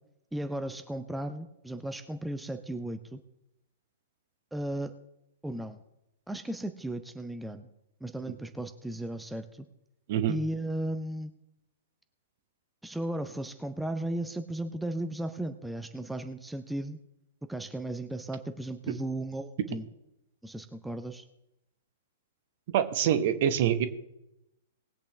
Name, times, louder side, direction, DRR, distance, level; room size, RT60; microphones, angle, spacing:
voice 1, 0.3-3.2 4.5-4.9 5.4-5.8 6.3-7.7 8.0-9.7 10.3-11.3 12.8-17.0 17.5-19.8 20.4-21.2, right 1 dB, 5° right, 8 dB, 0.6 m, -35 dB
voice 2, 22.7-23.9, right 9 dB, 45° right, 11 dB, 1.0 m, -25 dB
19.5 x 8.3 x 3.3 m, 0.86 s
figure-of-eight pair, 105°, 0 cm